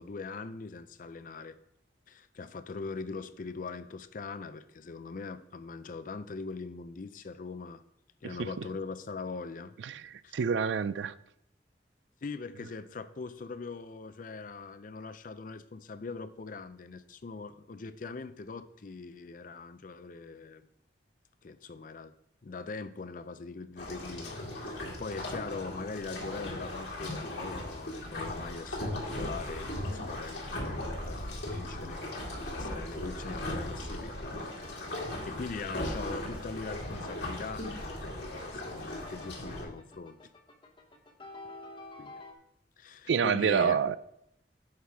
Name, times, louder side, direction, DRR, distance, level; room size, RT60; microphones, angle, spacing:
voice 1, 0.0-1.6 2.1-7.8 8.2-9.7 10.2-10.4 12.2-20.7 21.4-22.1 22.4-34.9 35.2-40.2 42.0-42.2 42.8-43.8, left 4 dB, 50° left, 0.5 m, -41 dB
voice 2, 9.8-11.2 43.1-44.0, right 6 dB, 85° right, 0.4 m, -28 dB
sound 1, 23.8-39.6, left 1 dB, 75° left, 2.3 m, -38 dB
sound 2, 26.9-42.3, left 1 dB, 30° left, 0.9 m, -52 dB
9.6 x 5.8 x 3.5 m
head